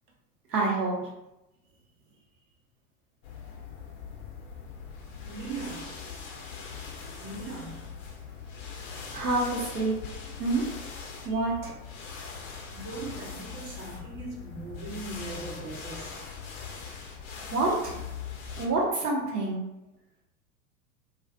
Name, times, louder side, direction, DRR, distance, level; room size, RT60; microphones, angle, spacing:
voice 1, 0.5-1.1 9.1-9.9 10.4-10.6 11.2-11.7 17.5-18.0 18.6-19.6, right 2 dB, 75° right, 0.9 m, -27 dB
sound 1, 3.2-18.7, left 6 dB, 40° left, 0.5 m, -41 dB
voice 2, 5.2-6.0 7.2-7.9 11.2-11.5 12.7-16.2, right 3 dB, 40° right, 0.7 m, -40 dB
2.4 x 2.3 x 2.2 m
figure-of-eight pair, 90°, 47 cm